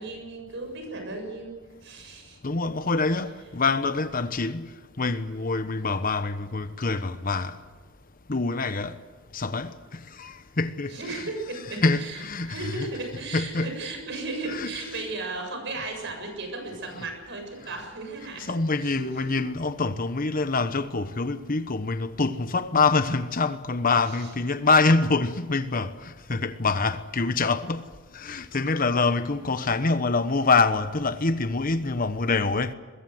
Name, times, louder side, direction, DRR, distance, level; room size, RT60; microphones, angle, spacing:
voice 1, 0.0-2.4 10.9-19.3 24.1-24.3, right 3 dB, 60° right, 7.2 m, -36 dB
voice 2, 2.4-7.6 8.3-9.0 9.3-11.3 11.8-12.9 13.3-13.7 14.5-14.7 18.5-27.9 28.1-32.7, left 3 dB, 45° left, 1.1 m, -25 dB
23.5 x 22.0 x 7.9 m
head